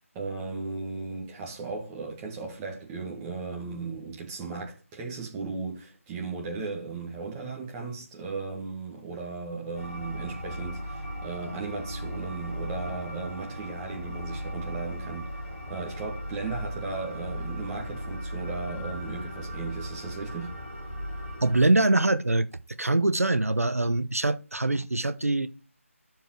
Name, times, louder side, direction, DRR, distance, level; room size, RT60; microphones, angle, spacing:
voice 1, 0.1-20.5, right 4 dB, 15° right, 1.7 m, -36 dB
sound 1, 9.7-21.6, equal, 5° left, 2.5 m, -37 dB
voice 2, 21.4-22.5 22.8-25.5, right 2 dB, 85° right, 0.7 m, -23 dB
12.0 x 4.7 x 3.2 m
figure-of-eight pair, 160°, 8 cm